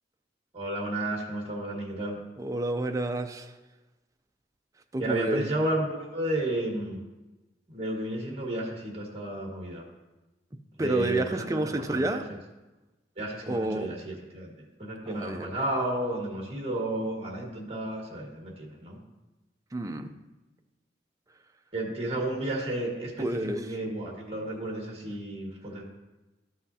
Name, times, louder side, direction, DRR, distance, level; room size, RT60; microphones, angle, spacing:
voice 1, 0.5-2.2 5.0-7.0 7.7-9.8 10.8-12.2 13.2-19.0 21.7-25.8, right 1 dB, 35° right, 0 dB, 1.6 m, -32 dB
voice 2, 2.4-3.6 4.9-5.5 10.8-12.2 13.5-13.9 15.1-15.5 19.7-20.1 23.2-23.7, right 1 dB, 20° right, 6 dB, 0.4 m, -30 dB
13.0 x 5.7 x 2.7 m, 1.1 s
head